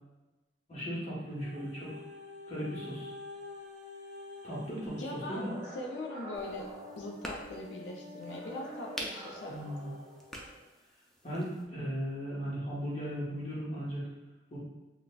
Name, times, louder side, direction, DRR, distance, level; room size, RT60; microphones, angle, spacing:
voice 1, 0.7-1.9 2.5-3.1 4.4-5.5 9.5-9.9 11.2-14.0 14.5-14.6, equal, 35° left, -7 dB, 1.0 m, -37 dB
sound 1, 1.4-10.5 11.2-11.3, left 2 dB, 45° right, 0.6 m, -49 dB
voice 2, 5.0-6.7 7.0-9.6, left 2 dB, 90° left, 0 dB, 0.5 m, -41 dB
sound 2, 5.2-7.6 8.2-10.6, equal, 15° right, 1.2 m, -48 dB
sound 3, 6.3-11.6, equal, ahead, 0.3 m, -47 dB
3.8 x 2.2 x 2.2 m, 1.2 s
head